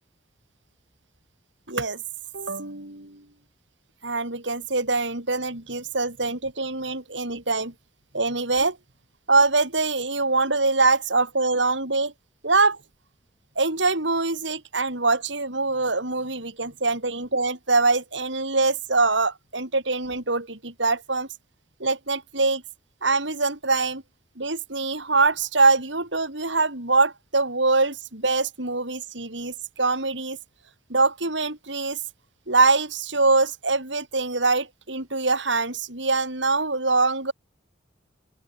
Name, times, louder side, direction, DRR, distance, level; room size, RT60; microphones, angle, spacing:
voice 1, 1.7-2.0 2.3-3.2 4.0-7.7 8.1-8.8 9.3-12.1 12.4-12.8 13.6-21.3 21.8-22.6 23.0-24.0 24.4-30.4 30.9-32.0 32.5-37.3, right 3 dB, 75° right, 5.3 m, -23 dB
open air
head